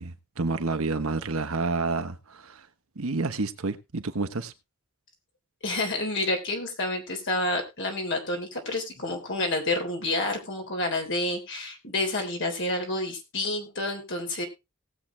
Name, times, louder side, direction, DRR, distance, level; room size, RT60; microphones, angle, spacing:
voice 1, 0.0-2.6 3.0-4.5, right 3 dB, 70° right, 1.1 m, -29 dB
voice 2, 5.6-14.4, left 2 dB, 55° left, 3.4 m, -29 dB
18.5 x 7.4 x 3.2 m
head